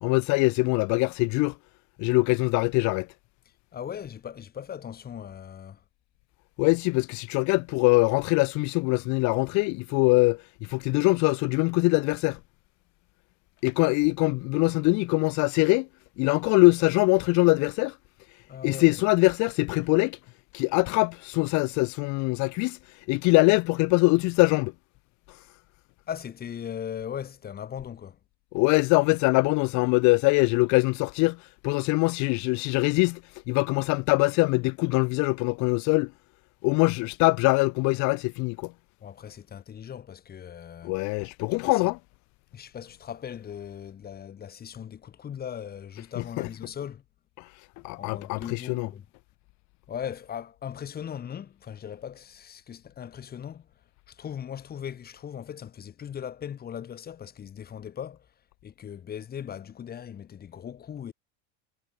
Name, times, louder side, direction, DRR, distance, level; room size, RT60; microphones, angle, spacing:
voice 1, 0.0-1.5 2.0-3.1 6.6-12.4 13.6-15.9 16.2-17.9 18.6-20.2 20.5-22.8 23.1-24.7 28.5-31.4 31.6-33.2 33.5-36.1 36.6-38.7 40.8-42.0 46.2-46.5 47.8-48.9, left 27 dB, 55° left, 1.3 m, -23 dB
voice 2, 3.7-5.8 18.5-18.9 26.1-28.2 39.0-41.0 41.6-41.9 42.5-47.0 48.0-49.0 49.9-53.7 54.1-58.3 58.6-61.1, left 9 dB, 25° left, 4.3 m, -39 dB
cardioid pair, 150°, 35 cm